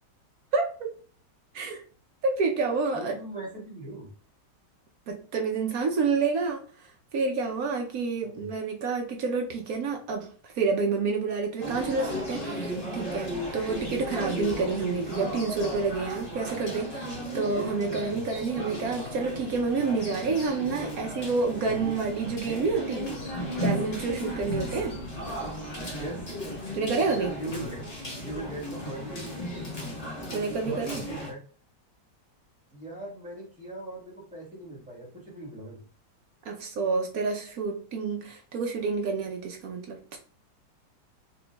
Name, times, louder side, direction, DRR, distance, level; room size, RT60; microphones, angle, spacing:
voice 1, 0.5-0.9 1.5-1.8 2.2-3.1 5.1-6.6 7.1-10.3 10.6-23.1 23.6-25.0 26.7-27.4 30.3-31.0 36.5-40.0, right 4 dB, 65° right, 1.0 m, -28 dB
voice 2, 2.9-4.1 8.2-8.5 18.1-18.5 25.9-26.3 27.3-27.9 28.2-29.2 30.7-31.4 32.7-35.8, right 1 dB, 5° right, 1.3 m, -40 dB
sound 1, 11.6-31.3, equal, 30° left, 0.7 m, -35 dB
4.2 x 3.8 x 2.3 m
omnidirectional pair, 1.9 m